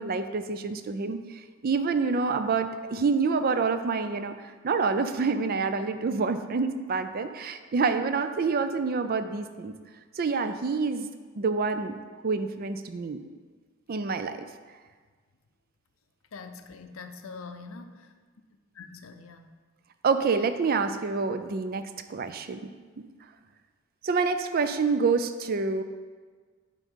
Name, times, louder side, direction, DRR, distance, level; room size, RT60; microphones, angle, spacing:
voice 1, 0.0-4.4 4.6-9.7 10.2-11.1 11.4-12.0 12.2-13.2 13.9-14.4 20.0-22.7 23.0-23.1 24.0-25.8, right 4 dB, 45° right, 10 dB, 0.4 m, -27 dB
voice 2, 16.3-18.1 18.8-19.6, left 4 dB, 80° left, 8 dB, 0.6 m, -44 dB
9.2 x 3.7 x 5.4 m, 1.5 s
head